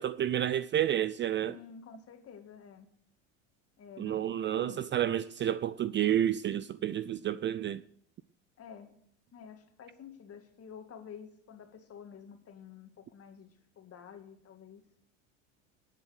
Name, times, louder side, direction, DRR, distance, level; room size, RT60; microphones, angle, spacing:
voice 1, 0.0-1.6 4.0-7.8, right 11 dB, 30° right, 0.5 m, -30 dB
voice 2, 1.5-2.9 3.8-4.9 8.6-8.9 9.3-13.5 13.8-14.8, left 7 dB, 40° left, 2.3 m, -50 dB
18.5 x 7.6 x 6.4 m
hypercardioid pair, 85°, 37 cm